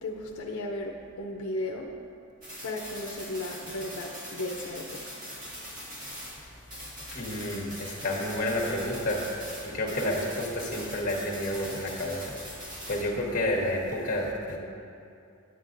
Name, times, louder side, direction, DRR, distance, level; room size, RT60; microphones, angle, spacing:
voice 1, 0.0-1.9 2.6-5.2, left 1 dB, 80° left, 1 dB, 0.6 m, -35 dB
sound 1, 2.4-6.4 6.7-13.1, equal, 35° right, 1.8 m, -42 dB
voice 2, 6.8-9.2 9.6-12.3 12.9-14.6, left 1 dB, 35° left, -2 dB, 1.2 m, -30 dB
10.0 x 9.1 x 2.5 m, 2.6 s
head